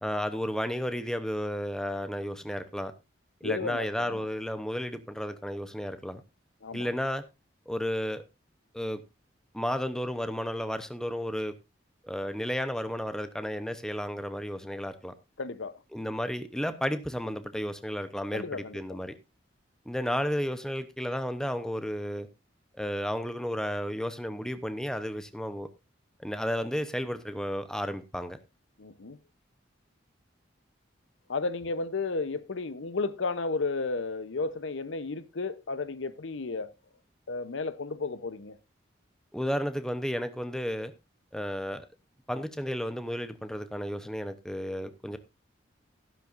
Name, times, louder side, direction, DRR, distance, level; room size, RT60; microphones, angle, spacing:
voice 1, 0.0-2.9 3.4-6.2 6.7-7.2 7.7-8.2 8.7-9.0 9.5-11.5 12.0-15.1 15.9-19.1 19.9-22.3 22.8-25.7 26.2-28.4 39.3-40.9 41.3-41.8 42.3-45.2, equal, 5° left, 0.7 m, -32 dB
voice 2, 3.4-4.2 6.6-6.9 15.4-15.7 18.3-19.0 28.8-29.2 31.3-36.7 37.3-38.5, left 3 dB, 85° left, 0.8 m, -33 dB
12.5 x 12.0 x 2.5 m
head